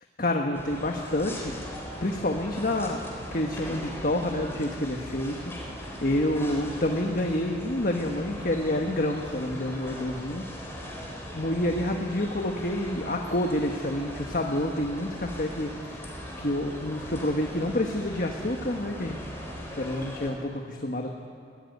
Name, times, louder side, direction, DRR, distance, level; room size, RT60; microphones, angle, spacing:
voice 1, 0.2-1.7 2.0-3.0 3.3-10.4 11.3-19.2 19.7-21.1, left 1 dB, 50° left, 2 dB, 1.4 m, -28 dB
sound 1, 0.5-20.3, equal, 15° left, 3.6 m, -39 dB
20.5 x 16.0 x 9.4 m, 2.4 s
head